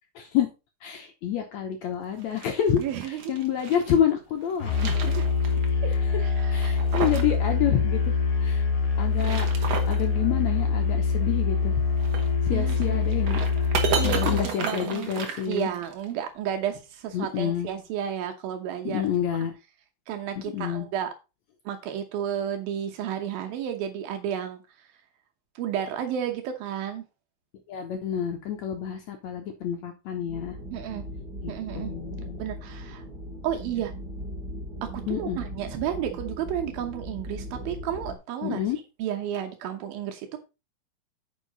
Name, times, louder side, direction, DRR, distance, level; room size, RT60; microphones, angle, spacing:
voice 1, 0.2-0.5 0.8-5.0 6.5-8.6 9.0-11.8 12.4-13.4 14.0-15.7 17.1-17.7 18.8-19.5 20.4-20.9 27.7-30.6 31.4-32.4 35.1-35.4 38.4-38.8, left 9 dB, 75° left, 1.6 m, -28 dB
sound 1, 2.1-4.0 4.4-5.7 5.9-6.0 6.5-7.4 7.6-7.7 9.0-10.0 12.0-16.0, right 6 dB, 55° right, 2.2 m, -33 dB
voice 2, 2.8-3.2 5.0-5.2 5.8-5.9 6.2-6.8 12.5-13.0 14.0-15.1 15.5-19.0 20.1-21.1 21.7-24.9 25.6-27.0 30.7-31.0 31.5-31.9 32.4-33.0 33.4-33.9 34.8-38.6 39.0-40.4, right 9 dB, 80° right, 2.7 m, -32 dB
Musical instrument, 4.6-14.5, left 5 dB, 40° left, 2.2 m, -24 dB
sound 2, 30.3-38.2, equal, 30° right, 2.4 m, -38 dB
9.7 x 5.5 x 4.0 m
omnidirectional pair, 4.3 m